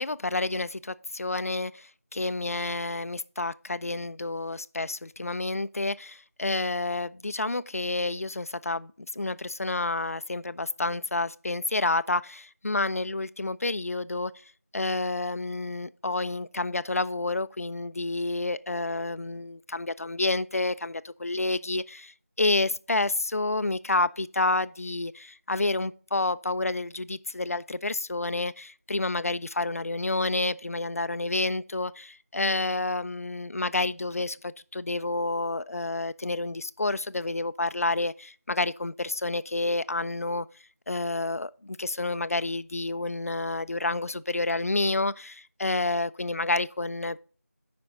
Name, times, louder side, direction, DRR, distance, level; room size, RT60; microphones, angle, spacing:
voice 1, 0.0-14.3 14.7-40.5 40.9-47.2, left 2 dB, 65° left, 0.4 m, -29 dB
9.5 x 5.1 x 3.6 m
figure-of-eight pair, 175°, 8 cm